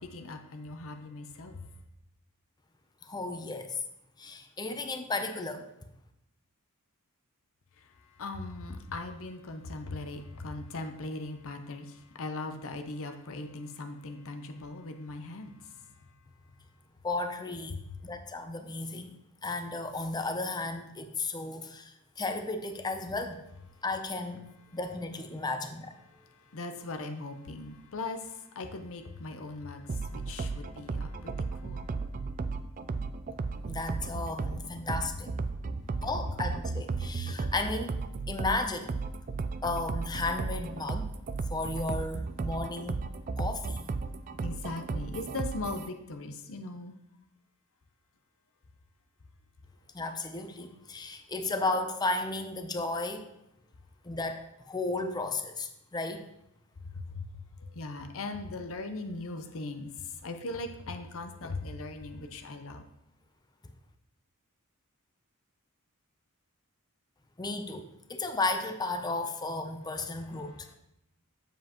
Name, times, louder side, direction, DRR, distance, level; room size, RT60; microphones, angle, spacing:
voice 1, 0.0-1.7 7.8-16.1 17.7-17.8 26.1-31.9 34.3-34.6 44.4-46.9 56.8-57.3 57.6-62.8 70.4-70.7, left 2 dB, 65° left, 0.7 m, -40 dB
voice 2, 3.0-3.8 4.2-5.7 17.0-17.8 18.0-19.1 19.4-23.4 23.8-24.4 24.7-26.0 33.7-35.3 35.8-39.0 39.6-41.1 41.5-43.0 43.4-43.9 49.9-53.3 54.0-56.3 67.4-70.6, left 3 dB, 20° left, 0.6 m, -34 dB
sound 1, 29.9-45.9, right 4 dB, 40° right, 0.3 m, -35 dB
7.4 x 7.2 x 2.9 m
head